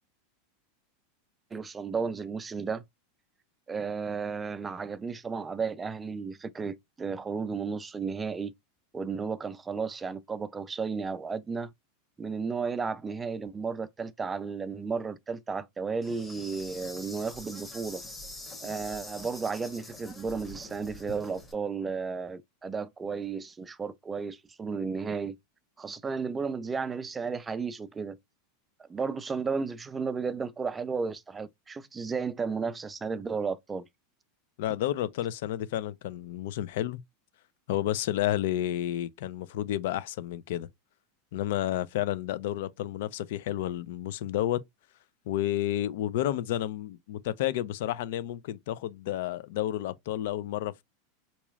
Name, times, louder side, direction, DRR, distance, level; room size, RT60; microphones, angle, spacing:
voice 1, 1.5-2.8 3.7-8.5 8.9-11.7 12.2-18.0 18.6-25.4 25.8-28.2 28.9-33.9, right 5 dB, 15° right, 0.3 m, -33 dB
Insect, 16.0-21.5, left 1 dB, 10° left, 1.0 m, -45 dB
voice 2, 34.6-37.0 37.7-40.7 41.3-44.6 45.3-50.8, left 13 dB, 70° left, 0.4 m, -31 dB
4.0 x 3.0 x 2.3 m
supercardioid pair, 140°, 0 cm